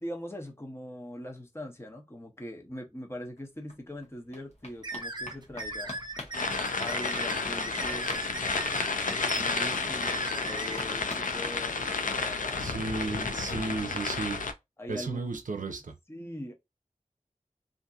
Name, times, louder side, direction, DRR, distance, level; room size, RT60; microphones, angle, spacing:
voice 1, 0.0-5.9 6.8-13.9 14.8-15.3 16.1-16.5, left 1 dB, 20° left, 0.7 m, -42 dB
sound 1, 3.4-3.5 3.7-12.2 12.5-12.6 12.8-12.9 13.2-13.3, left 2 dB, 55° left, 0.9 m, -46 dB
sound 2, 4.8-10.8, right 2 dB, 35° right, 0.5 m, -38 dB
sound 3, 6.3-14.5, left 4 dB, 90° left, 0.4 m, -31 dB
voice 2, 12.6-14.4 14.9-15.9, right 3 dB, 85° right, 0.5 m, -34 dB
2.6 x 2.5 x 2.3 m
wide cardioid pair, 50°, 13 cm